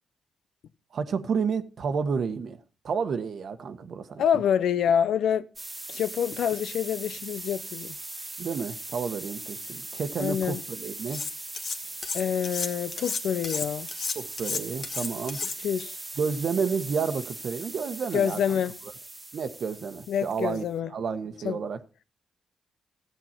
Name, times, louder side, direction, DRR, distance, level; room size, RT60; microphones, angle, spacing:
voice 1, 0.9-2.6 2.8-4.2 8.4-11.2 14.1-15.4 16.2-18.6 19.3-21.8, right 5 dB, 65° right, 1.2 m, -30 dB
voice 2, 4.2-5.5 5.9-8.0 10.2-10.6 12.1-13.9 15.6-16.0 18.1-18.7 20.1-20.9 21.4-21.6, left 8 dB, 80° left, 0.6 m, -26 dB
sound 1, 5.6-20.7, right 2 dB, 25° right, 1.5 m, -40 dB
Cutlery silverware, 11.1-11.8 12.0-15.8, left 5 dB, 60° left, 1.5 m, -32 dB
14.0 x 8.1 x 4.3 m
cardioid pair, 75°, 0 cm